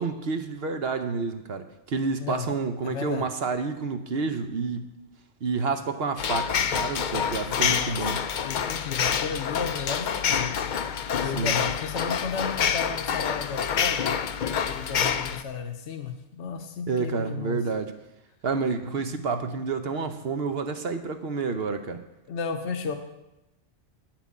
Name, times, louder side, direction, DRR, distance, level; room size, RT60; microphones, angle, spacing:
voice 1, 0.0-4.9 5.4-8.2 11.2-11.5 16.9-17.9 18.4-22.0, right 4 dB, 60° right, 7 dB, 1.0 m, -29 dB
voice 2, 2.8-3.3 7.5-10.5 11.2-14.2 14.7-17.6 22.3-23.0, left 6 dB, 75° left, 5 dB, 1.1 m, -34 dB
sound 1, 6.2-15.4, left 7 dB, 55° left, 0.5 m, -27 dB
9.0 x 5.9 x 8.3 m, 0.93 s
omnidirectional pair, 1.2 m